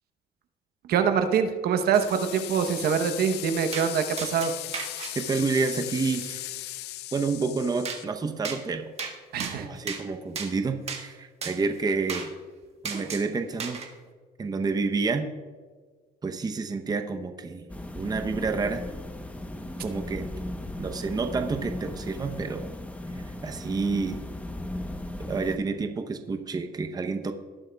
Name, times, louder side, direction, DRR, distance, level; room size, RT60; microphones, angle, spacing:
voice 1, 0.9-4.5 9.3-9.7, right 7 dB, 65° right, 7 dB, 0.9 m, -24 dB
sound 1, 1.9-8.0, left 15 dB, 80° left, 0.5 m, -37 dB
sound 2, 3.7-3.9 4.2-5.1 7.9-8.0 8.4-8.6 9.0-9.1 9.4-10.0 10.4-10.5 10.9-11.0 11.4-11.6 12.1-12.3 12.9-13.3 13.6-13.9, right 5 dB, 40° right, 1.4 m, -34 dB
voice 2, 5.2-6.5 7.1-8.9 9.5-12.3 12.8-13.8 14.4-15.3 16.2-17.6 17.9-18.8 19.8-20.3 20.8-22.7 23.2-24.2 25.2-27.3, right 4 dB, 25° right, 6 dB, 0.7 m, -29 dB
sound 3, 17.7-25.6, left 1 dB, 10° left, 0.8 m, -36 dB
18.5 x 8.9 x 2.3 m, 1.5 s
cardioid pair, 110°, 17 cm